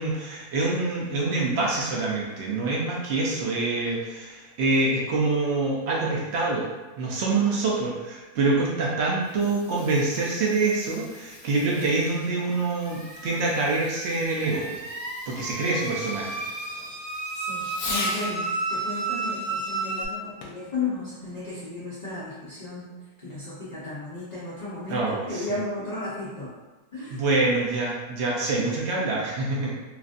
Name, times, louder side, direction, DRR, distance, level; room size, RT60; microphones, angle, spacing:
voice 1, 0.0-6.7 7.0-14.8 15.3-16.5 24.9-25.5 27.1-29.7, right 3 dB, 80° right, -3 dB, 0.5 m, -26 dB
Fireworks, 9.2-18.4 20.4-20.7 21.4-21.5, left 3 dB, 70° left, 1.0 m, -40 dB
sound 1, 12.5-20.0, right 3 dB, 20° left, 0.4 m, -33 dB
voice 2, 17.4-22.9 23.2-26.5 26.9-27.2, left 3 dB, 90° left, -10 dB, 0.3 m, -34 dB
3.1 x 2.5 x 2.5 m, 1.2 s
omnidirectional pair, 1.8 m